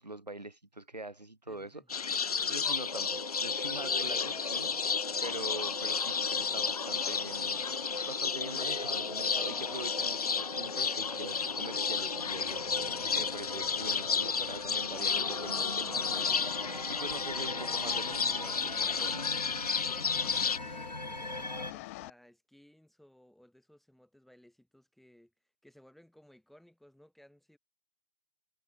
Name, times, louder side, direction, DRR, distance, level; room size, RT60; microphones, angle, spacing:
voice 1, 0.0-1.8 2.4-7.6 8.1-19.3, right 2 dB, 80° right, 6.5 m, -44 dB
voice 2, 1.5-1.9 20.2-25.3 25.6-27.6, equal, ahead, 2.9 m, -60 dB
sound 1, 1.9-20.6, left 6 dB, 65° left, 0.8 m, -32 dB
sound 2, 2.8-21.7, left 1 dB, 90° left, 3.2 m, -42 dB
sound 3, 12.0-22.1, left 22 dB, 20° left, 0.7 m, -50 dB
figure-of-eight pair, 135°, 21 cm